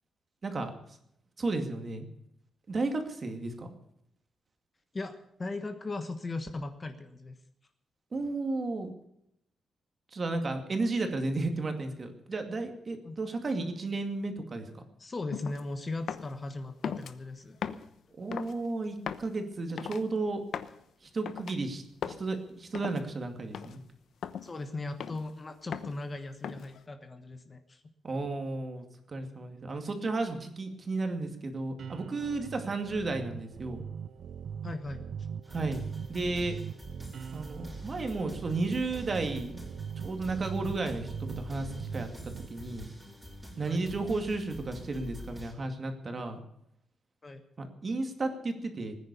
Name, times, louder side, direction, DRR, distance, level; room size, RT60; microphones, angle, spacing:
voice 1, 1.4-2.1 2.7-3.7 8.1-8.9 10.1-14.8 18.2-20.4 21.0-23.8 28.0-33.8 35.5-35.8 36.1-36.6 37.3-39.6 40.0-42.1 42.5-42.9 43.6-46.4 47.6-48.9, right 3 dB, 30° right, 5 dB, 2.3 m, -33 dB
voice 2, 4.9-7.4 13.0-13.2 15.0-17.6 24.4-27.8 32.6-32.7 34.6-35.3 43.7-43.8 47.2-47.4, left 2 dB, 25° left, 8 dB, 1.2 m, -38 dB
sound 1, 15.3-15.6 16.1-16.4 16.8-17.1 17.6-17.9 18.3-18.6 19.1-19.3 19.8-20.0 20.5-20.8 21.3-21.6 22.0-22.2 22.7-23.0 23.5-23.8 24.2-24.5 25.0-25.3 25.7-26.0 26.4-26.8, left 8 dB, 65° left, 0.9 m, -38 dB
sound 2, 31.8-42.5, right 7 dB, 60° right, 0.6 m, -41 dB
sound 3, 35.4-45.5, equal, ahead, 5.2 m, -46 dB
20.0 x 10.0 x 6.9 m, 0.75 s
wide cardioid pair, 155°, 0 cm